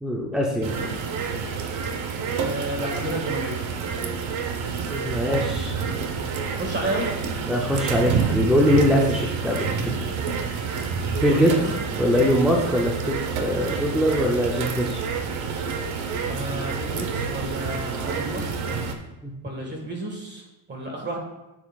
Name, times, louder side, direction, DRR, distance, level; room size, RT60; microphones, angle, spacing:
voice 1, 0.0-0.7 4.9-5.7 7.5-9.9 11.2-11.5 12.0-15.0 19.2-19.3, equal, ahead, -2 dB, 0.4 m, -22 dB
sound 1, 0.6-18.9, right 5 dB, 65° right, 1.0 m, -28 dB
voice 2, 2.4-3.6 6.6-7.1 11.3-11.7 16.3-18.5 19.4-21.2, right 1 dB, 20° right, 0 dB, 1.6 m, -31 dB
10.5 x 7.0 x 2.3 m, 1.0 s
cardioid pair, 160°, 50 cm